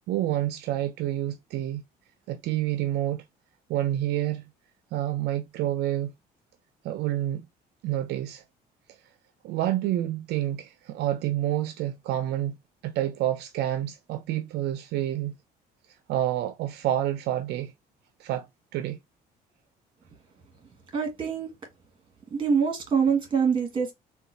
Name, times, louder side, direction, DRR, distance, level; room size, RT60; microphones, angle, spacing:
voice 1, 0.1-1.8 2.3-3.2 3.7-4.4 4.9-6.1 6.8-7.5 7.8-8.4 9.4-12.6 12.8-15.3 16.1-17.7 18.2-18.5 18.7-19.0, right 13 dB, 75° right, 0.5 m, -28 dB
voice 2, 20.9-21.5 22.3-23.9, right 6 dB, 30° right, 1.5 m, -24 dB
3.8 x 2.3 x 2.6 m
cardioid pair, 110°, 17 cm